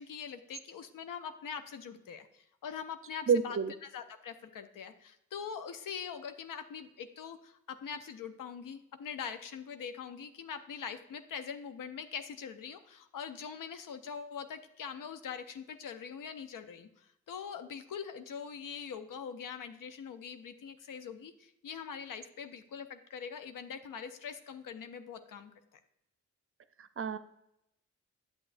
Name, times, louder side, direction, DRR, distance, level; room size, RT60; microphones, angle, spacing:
voice 1, 0.0-25.8, left 7 dB, 75° left, 9 dB, 0.6 m, -43 dB
voice 2, 3.3-3.7 26.8-27.2, right 6 dB, 40° right, 12 dB, 0.5 m, -29 dB
8.7 x 7.4 x 2.5 m, 0.81 s
supercardioid pair, 40°, 32 cm